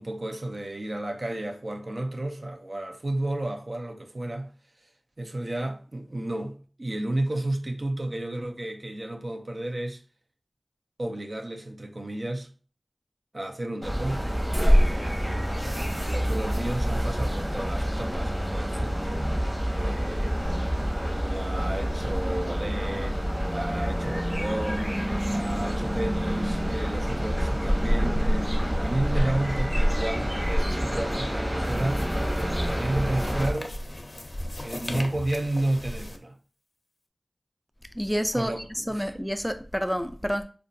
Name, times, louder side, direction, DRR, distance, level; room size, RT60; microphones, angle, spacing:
voice 1, 0.0-4.5 4.8-4.9 5.2-10.0 11.0-12.5 13.3-19.3 19.7-20.4 20.8-23.2 23.5-25.0 25.3-32.1 32.4-33.8 34.6-36.4 38.3-39.1, right 1 dB, 65° right, 0.5 m, -32 dB
sound 1, 13.8-33.5, equal, 20° right, 1.7 m, -26 dB
sound 2, 31.6-36.2, left 1 dB, 65° left, 0.4 m, -38 dB
voice 2, 37.9-40.4, equal, ahead, 0.3 m, -29 dB
4.7 x 2.2 x 2.6 m
wide cardioid pair, 40°, 0 cm